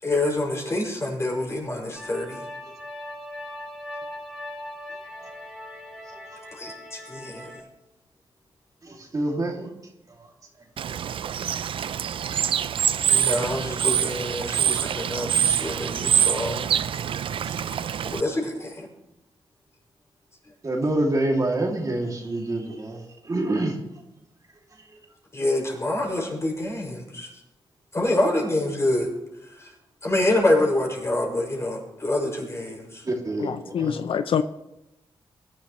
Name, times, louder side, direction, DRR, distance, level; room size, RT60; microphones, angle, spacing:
voice 1, 0.0-2.4 6.5-7.5 12.3-12.7 13.1-16.7 18.0-18.9 25.3-27.3 27.9-29.1 29.4-29.7 30.0-33.0, left 1 dB, 30° left, -1 dB, 6.0 m, -26 dB
sound 1, 2.0-7.6, left 1 dB, ahead, 5.7 m, -39 dB
voice 2, 4.9-5.3 6.1-6.2 8.8-9.7 10.1-10.3 10.8-10.9 17.4-17.8 20.6-23.8 24.7-25.0 33.0-34.0, right 2 dB, 40° right, 1 dB, 2.5 m, -28 dB
Bird / Water, 10.8-18.2, right 8 dB, 70° right, 0.4 m, -25 dB
voice 3, 33.4-34.4, left 8 dB, 75° left, 11 dB, 0.5 m, -25 dB
22.5 x 12.0 x 3.1 m, 0.92 s
cardioid pair, 85°, 9 cm